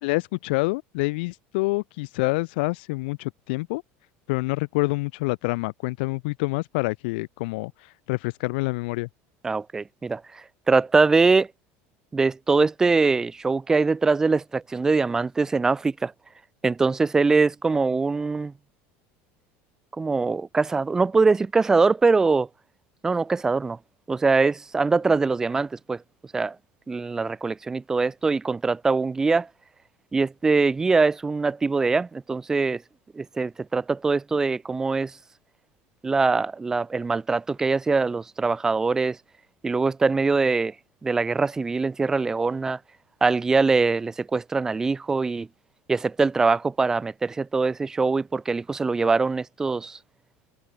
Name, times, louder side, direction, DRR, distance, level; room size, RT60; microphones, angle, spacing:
voice 1, 0.0-3.8 4.3-9.1, left 25 dB, 80° left, 4.1 m, -27 dB
voice 2, 9.4-11.5 12.1-16.1 16.6-18.5 20.0-22.5 23.0-23.8 24.1-26.0 26.3-26.6 26.9-29.5 30.1-32.8 33.1-35.1 36.0-39.2 39.6-40.7 41.0-42.8 43.2-45.5 45.9-50.0, right 4 dB, 10° right, 0.6 m, -23 dB
cardioid pair, 175°, 5 cm